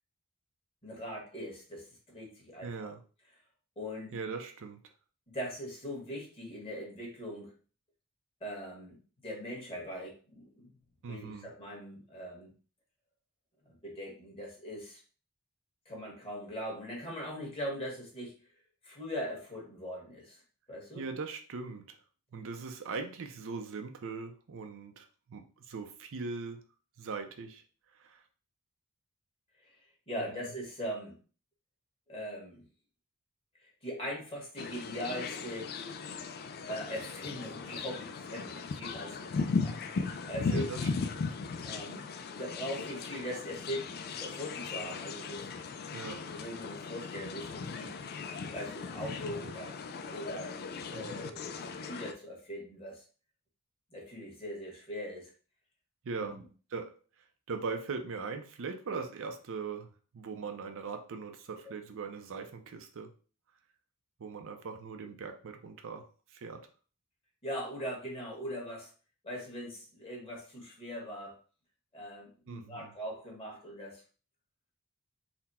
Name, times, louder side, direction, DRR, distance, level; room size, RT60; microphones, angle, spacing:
voice 1, 0.8-1.9 2.1-2.9 3.8-4.1 5.3-7.5 8.4-9.0 9.2-10.7 11.1-12.5 13.6-15.0 15.8-18.3 18.8-20.4 20.7-21.0 30.1-31.1 32.1-32.6 33.8-35.7 36.7-39.8 40.3-40.7 41.6-42.0 42.4-45.5 46.3-47.9 48.5-49.8 50.1-50.5 50.8-53.0 53.9-55.3 56.2-56.4 67.4-68.9 69.2-71.4 71.9-74.0, equal, 25° left, -2 dB, 1.5 m, -40 dB
voice 2, 2.6-3.0 4.1-4.8 11.0-11.5 20.9-22.0 22.3-26.7 27.0-27.6 27.9-28.2 30.3-30.4 40.4-41.3 45.9-46.3 50.9-51.1 56.0-56.4 56.7-63.1 64.2-66.7 72.5-72.9, right 4 dB, 60° right, 5 dB, 0.5 m, -40 dB
sound 1, 34.6-52.1, left 4 dB, 45° left, 0.3 m, -37 dB
4.1 x 2.1 x 4.1 m, 0.38 s
head